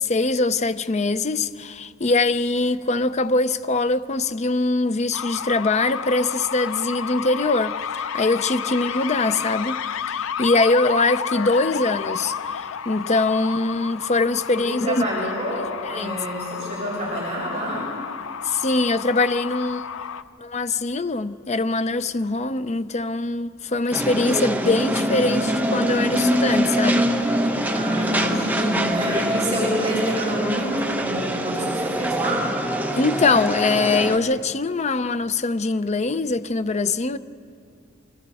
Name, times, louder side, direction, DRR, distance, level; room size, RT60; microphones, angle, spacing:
voice 1, 0.0-9.8 10.1-15.0 15.5-16.2 18.5-19.8 20.4-27.1 27.4-27.5 32.9-37.2, left 3 dB, 35° left, 0.6 m, -23 dB
sound 1, 5.1-20.2, left 7 dB, 75° left, 0.6 m, -31 dB
voice 2, 14.7-17.9 27.7-32.5, equal, 35° right, 7.1 m, -27 dB
sound 2, 23.9-34.2, equal, 10° right, 1.2 m, -24 dB
28.0 x 25.0 x 4.2 m
head